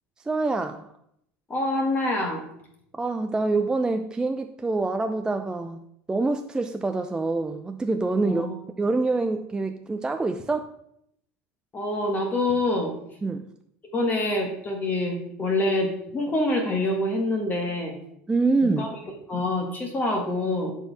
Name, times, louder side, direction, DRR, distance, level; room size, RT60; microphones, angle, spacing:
voice 1, 0.3-0.9 2.9-5.8 6.1-8.5 8.8-10.7 13.2-13.5 18.3-18.9, right 3 dB, 10° right, 6 dB, 0.4 m, -26 dB
voice 2, 1.5-2.5 8.2-8.5 11.7-12.9 13.8-18.0 18.6-18.9 19.3-20.7, left 2 dB, 25° left, 2 dB, 1.5 m, -26 dB
12.5 x 4.5 x 3.4 m, 0.75 s
supercardioid pair, 115°, 7 cm